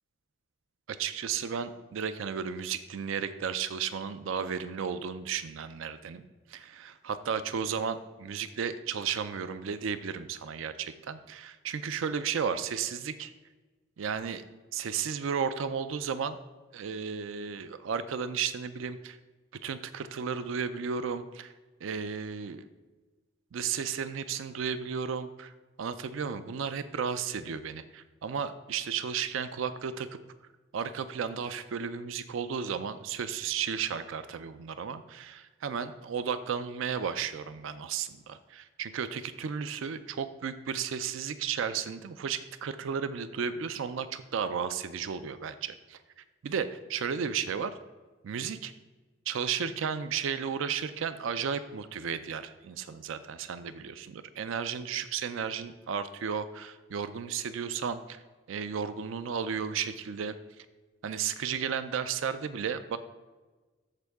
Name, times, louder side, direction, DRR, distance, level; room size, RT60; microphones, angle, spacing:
voice 1, 0.9-6.2 6.5-13.3 14.0-14.5 14.7-16.4 16.7-19.2 19.6-21.5 21.8-22.6 23.5-25.5 25.8-30.2 30.7-47.7 48.2-48.7 49.3-58.2 58.5-60.7 61.0-63.0, right 7 dB, 75° right, 12 dB, 0.4 m, -34 dB
13.0 x 4.6 x 3.5 m, 1.3 s
head